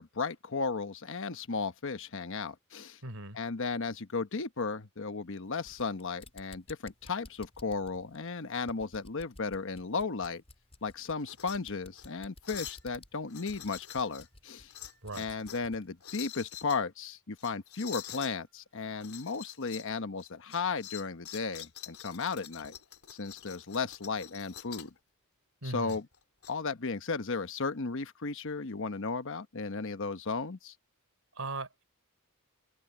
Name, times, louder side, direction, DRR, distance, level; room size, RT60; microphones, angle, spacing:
voice 1, 0.0-3.0 3.3-10.4 10.8-14.7 15.1-22.7 23.1-24.9 25.6-26.1 26.5-30.7, left 4 dB, 60° left, 1.1 m, -35 dB
voice 2, 3.0-3.4 15.0-15.3 25.6-26.0 31.4-31.8, right 2 dB, 70° right, 3.7 m, -38 dB
sound 1, 5.4-15.9, left 2 dB, 30° left, 4.7 m, -55 dB
sound 2, 11.2-11.6 11.9-12.1 12.4-12.9 13.3-14.3 14.7-15.7 16.0-16.8 17.4-18.3 19.0-19.9 20.2-25.0 25.9-26.5, left 11 dB, 80° left, 3.8 m, -46 dB
head